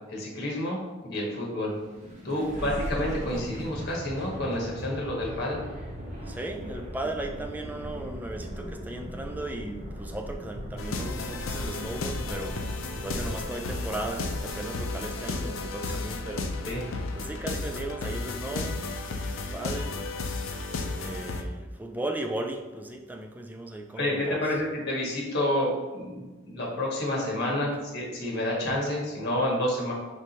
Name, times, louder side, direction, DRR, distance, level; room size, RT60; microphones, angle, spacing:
voice 1, 0.1-1.7 2.2-5.6 16.6-16.8 24.0-29.9, left 1 dB, 55° left, -3 dB, 1.3 m, -29 dB
sound 1, 1.8-14.9, equal, 40° right, 1.0 m, -39 dB
voice 2, 2.3-2.7 6.3-16.5 17.1-20.0 20.9-24.4 27.7-27.8, right 2 dB, 10° right, 3 dB, 0.3 m, -36 dB
sound 2, 10.8-21.4, left 3 dB, 90° left, 0.5 m, -33 dB
4.8 x 3.7 x 2.9 m, 1.2 s
head